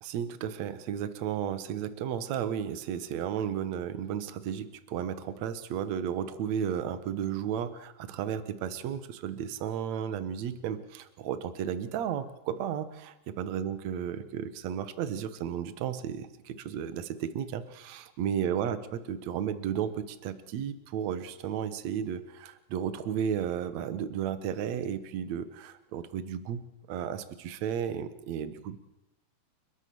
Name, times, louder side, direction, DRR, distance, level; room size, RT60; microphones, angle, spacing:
voice 1, 0.0-26.6 26.9-28.8, right 9 dB, 60° right, 12 dB, 2.0 m, -33 dB
29.5 x 13.0 x 7.0 m, 0.98 s
omnidirectional pair, 4.6 m